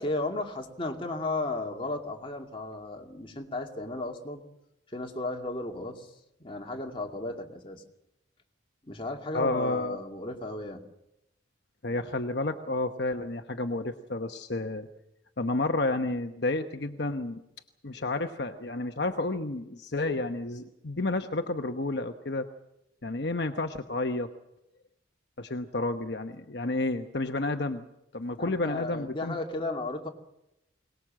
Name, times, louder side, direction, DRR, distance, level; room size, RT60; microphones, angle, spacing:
voice 1, 0.0-4.4 4.9-6.1 6.4-7.8 8.8-10.8 28.5-30.1, left 2 dB, 25° left, 2 dB, 2.4 m, -34 dB
voice 2, 9.3-10.0 11.8-14.9 15.4-17.4 17.8-22.5 23.0-24.3 25.4-27.8 28.1-29.4, left 2 dB, 60° left, 6 dB, 1.0 m, -30 dB
23.0 x 20.0 x 7.6 m, 0.85 s
head